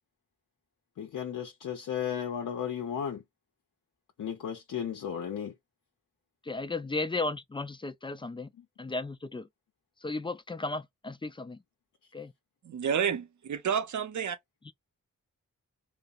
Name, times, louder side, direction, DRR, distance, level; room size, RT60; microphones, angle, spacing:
voice 1, 1.0-3.2 4.2-5.5 8.6-8.7, left 8 dB, 70° left, 0.6 m, -34 dB
voice 2, 6.4-8.5 8.8-9.5 10.0-11.6 12.1-12.3, left 3 dB, 15° left, 0.3 m, -35 dB
voice 3, 12.6-14.4, right 7 dB, 60° right, 0.6 m, -30 dB
2.7 x 2.0 x 2.3 m
cardioid pair, 45°, 33 cm